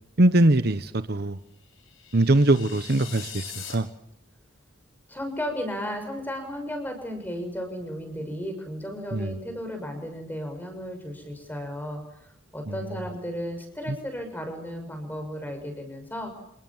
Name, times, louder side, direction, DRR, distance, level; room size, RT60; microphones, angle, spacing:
voice 1, 0.2-1.4 2.1-3.9 9.1-9.3 12.7-12.8 13.9-14.0, right 1 dB, 50° right, 11 dB, 1.0 m, -22 dB
sound 1, 1.7-3.7, left 8 dB, 80° left, 5.9 m, -41 dB
voice 2, 5.1-16.3, equal, 10° left, 5 dB, 6.6 m, -34 dB
28.0 x 28.0 x 7.4 m, 0.77 s
head